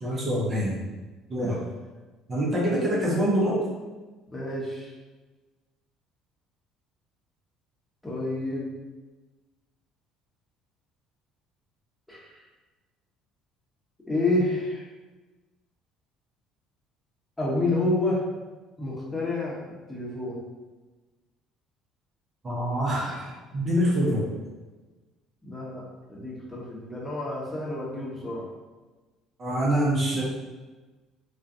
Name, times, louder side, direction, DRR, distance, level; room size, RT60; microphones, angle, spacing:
voice 1, 0.0-0.8 1.3-1.7 2.3-3.6 22.4-24.3 29.4-30.2, equal, 35° right, -5 dB, 0.7 m, -25 dB
voice 2, 4.3-4.9 8.0-8.7 12.1-12.4 14.1-14.8 17.4-18.2 18.8-19.6 19.9-20.4 25.4-28.4, left 2 dB, 15° left, -6 dB, 0.9 m, -29 dB
2.3 x 2.3 x 2.6 m, 1.2 s
figure-of-eight pair, 55°, 0 cm